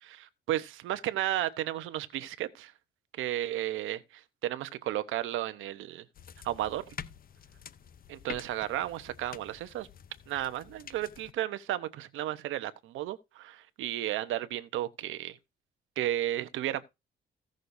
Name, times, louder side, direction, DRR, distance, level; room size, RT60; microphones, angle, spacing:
voice 1, 0.0-2.7 3.2-6.0 6.4-6.9 8.1-9.9 10.3-15.4 16.0-16.8, right 13 dB, 85° right, 0.9 m, -33 dB
sound 1, 6.1-11.3, left 8 dB, 45° left, 0.7 m, -47 dB
16.0 x 6.5 x 2.7 m
cardioid pair, 90°, 20 cm